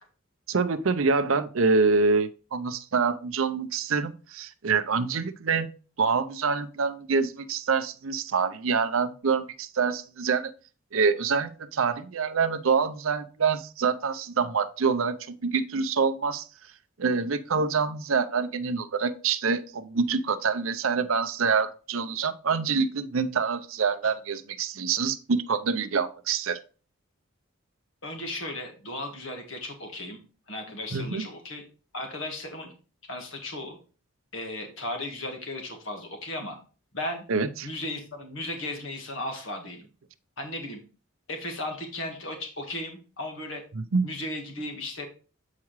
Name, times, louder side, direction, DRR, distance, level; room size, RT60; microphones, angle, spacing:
voice 1, 0.5-5.7 6.0-10.5 10.9-16.5 17.0-26.6 30.9-31.2 37.3-37.7 43.9-44.1, right 5 dB, 70° right, 11 dB, 0.6 m, -26 dB
voice 2, 28.0-30.2 30.5-31.6 31.9-32.7 33.1-33.8 34.3-36.6 36.9-37.3 37.6-39.9 40.4-40.8 41.3-43.6 44.0-45.1, left 1 dB, 65° left, 3 dB, 1.6 m, -35 dB
8.4 x 4.8 x 3.1 m, 0.36 s
head